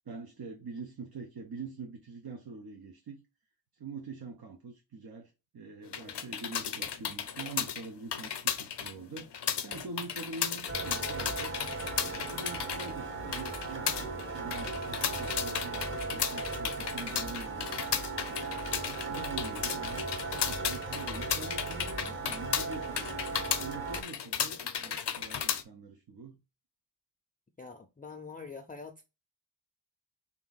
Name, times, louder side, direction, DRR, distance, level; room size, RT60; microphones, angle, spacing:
voice 1, 0.1-3.2 3.7-9.3 9.6-11.5 12.0-18.4 18.9-20.1 20.5-23.1 23.5-26.4, right 4 dB, 55° right, 0.8 m, -44 dB
sound 1, 5.8-25.6, left 8 dB, 65° left, 0.6 m, -35 dB
sound 2, 10.7-24.0, right 3 dB, 25° right, 0.9 m, -37 dB
voice 2, 27.6-29.0, left 4 dB, 20° left, 0.4 m, -45 dB
3.4 x 2.9 x 3.9 m
wide cardioid pair, 90°, 44 cm